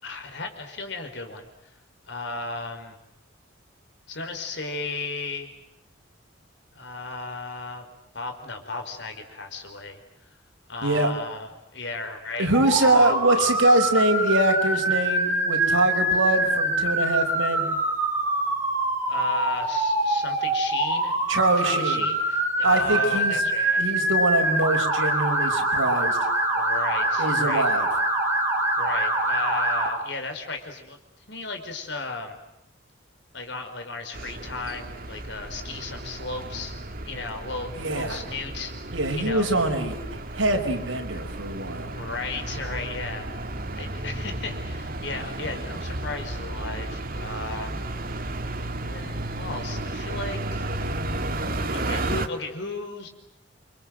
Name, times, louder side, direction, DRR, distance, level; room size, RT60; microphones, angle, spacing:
voice 1, 0.0-1.4 2.1-3.0 4.1-5.5 6.7-7.9 8.1-10.0 10.7-12.5 12.8-13.5 19.1-21.2 21.6-23.8 26.5-27.7 28.8-31.0 31.3-32.4 33.3-36.7 37.0-39.6 41.9-43.3 43.7-47.8 48.9-50.7 51.7-53.1, left 3 dB, 60° left, 5 dB, 5.2 m, -35 dB
voice 2, 10.8-11.1 12.4-17.7 21.3-22.1 22.6-23.4 23.8-26.2 27.2-27.9 37.7-38.2 38.9-41.9, right 2 dB, 85° right, 4 dB, 5.4 m, -23 dB
Motor vehicle (road) / Siren, 12.5-29.9, right 1 dB, 10° right, 5.5 m, -24 dB
sound 1, 34.1-52.3, right 1 dB, 50° right, 2.1 m, -33 dB
29.0 x 25.5 x 7.9 m, 0.86 s
head